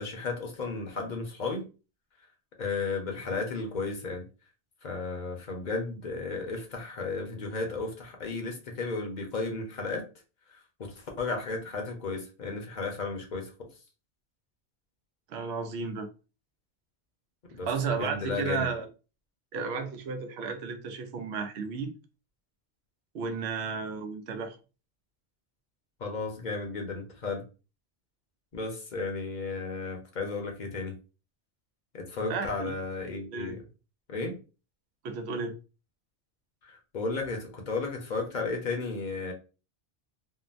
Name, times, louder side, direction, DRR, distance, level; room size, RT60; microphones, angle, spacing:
voice 1, 0.0-1.7 2.6-4.2 4.8-10.1 10.5-13.7 17.5-18.7 26.0-27.4 28.5-31.0 31.9-33.6 34.1-34.4 36.6-39.3, left 3 dB, 45° left, 0.9 m, -34 dB
voice 2, 15.3-16.1 17.6-18.9 19.5-21.9 23.1-24.6 32.3-32.7 33.3-33.6 35.0-35.6, right 5 dB, 75° right, 0.9 m, -33 dB
3.7 x 2.1 x 2.5 m
omnidirectional pair, 1.1 m